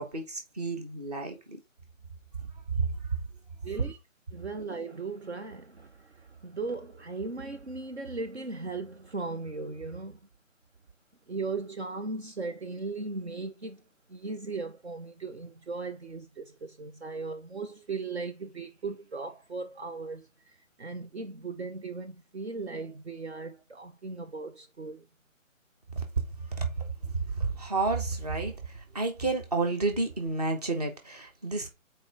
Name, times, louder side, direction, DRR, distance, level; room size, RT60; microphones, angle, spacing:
voice 1, 0.0-1.6 2.8-2.9 26.0-26.1 26.5-26.7 27.0-31.7, right 3 dB, 30° right, 1.1 m, -31 dB
voice 2, 3.6-4.0 4.3-5.9 6.4-10.2 11.3-13.8 14.1-20.2 20.8-25.0, right 3 dB, 55° right, 0.9 m, -37 dB
5.1 x 4.5 x 4.8 m
figure-of-eight pair, 170°, 41 cm